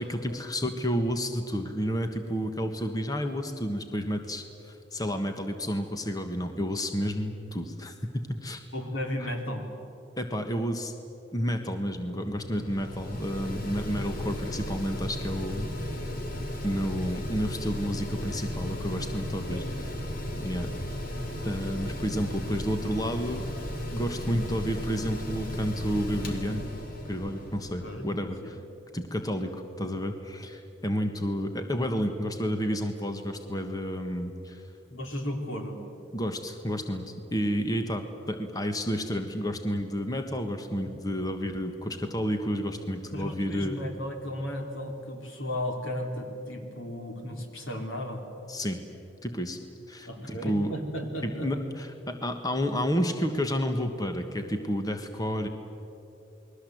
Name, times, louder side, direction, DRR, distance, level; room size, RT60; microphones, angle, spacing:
voice 1, 0.0-8.6 9.2-9.3 10.2-10.9 11.3-15.7 16.0-16.1 16.6-19.9 20.4-20.7 21.4-23.5 23.9-26.7 27.1-28.6 28.9-34.6 36.1-43.8 48.5-48.8 49.2-49.6 49.9-50.7 51.2-55.5, equal, 20° left, 6 dB, 1.4 m, -30 dB
voice 2, 8.7-9.6 19.5-19.8 27.8-28.5 34.9-35.8 43.1-48.2 50.1-51.5, left 1 dB, 90° left, 3 dB, 3.6 m, -35 dB
Mechanical fan, 11.9-28.1, left 1 dB, 45° left, 2.7 m, -35 dB
28.5 x 21.0 x 7.9 m, 2.9 s
head